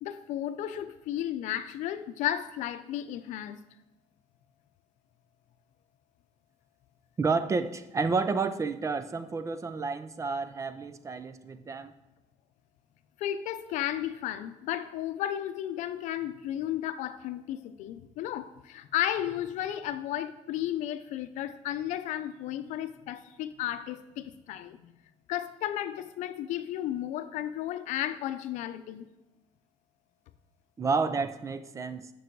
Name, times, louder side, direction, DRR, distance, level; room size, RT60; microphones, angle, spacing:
voice 1, 0.0-3.6 13.2-24.9 25.3-29.1, left 12 dB, 80° left, 0.6 m, -33 dB
voice 2, 7.2-11.9 30.8-32.1, right 4 dB, 25° right, 0.5 m, -30 dB
9.2 x 6.2 x 4.6 m
cardioid pair, 125°, 12 cm